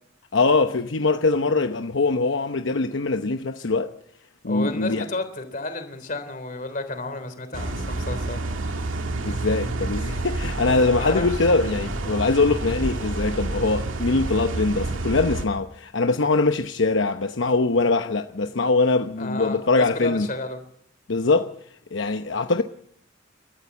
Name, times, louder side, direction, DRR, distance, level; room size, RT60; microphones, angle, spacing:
voice 1, 0.3-3.9 4.4-5.1 9.2-20.3 21.1-21.5 21.9-22.6, left 3 dB, 70° left, 0.9 m, -22 dB
voice 2, 4.4-8.4 10.9-11.3 19.2-20.6, left 2 dB, 40° left, 3.4 m, -32 dB
sound 1, 7.5-15.5, right 2 dB, 90° right, 2.1 m, -29 dB
29.5 x 13.0 x 8.3 m
head